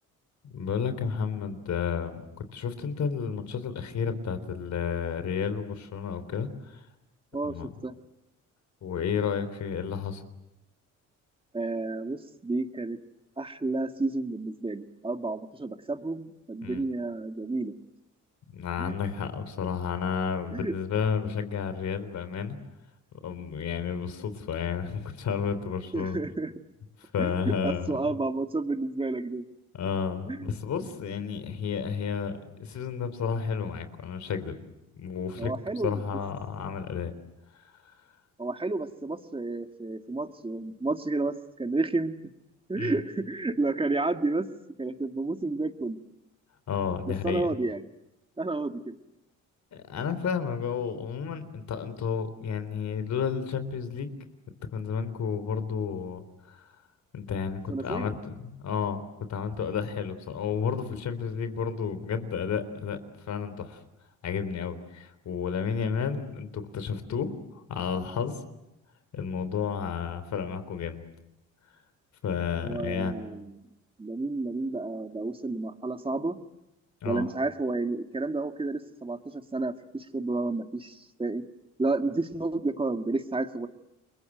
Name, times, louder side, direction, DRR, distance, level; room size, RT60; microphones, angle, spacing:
voice 1, 0.4-2.2 2.5-6.8 7.4-7.7 8.8-10.2 16.6-16.9 18.5-22.6 23.2-26.2 27.0-27.9 29.7-34.5 34.9-35.5 35.8-37.1 42.8-43.0 46.7-47.5 49.7-54.1 54.7-56.2 56.5-56.6 57.1-59.0 59.3-63.0 63.3-63.8 64.2-68.4 69.1-71.0 72.2-73.2 77.0-77.3, left 6 dB, 65° left, 11 dB, 3.8 m, -31 dB
voice 2, 7.3-8.0 11.5-13.0 13.4-17.7 18.8-18.9 20.5-20.7 25.9-26.5 27.2-29.4 30.3-30.6 35.4-36.0 38.4-42.1 42.7-44.5 44.8-46.0 47.1-47.8 48.4-49.0 57.7-58.1 72.6-73.7 74.0-76.4 77.0-81.4 81.8-83.7, right 2 dB, 20° right, 7 dB, 2.0 m, -31 dB
30.0 x 22.5 x 8.0 m, 0.95 s
cardioid pair, 90°, 30 cm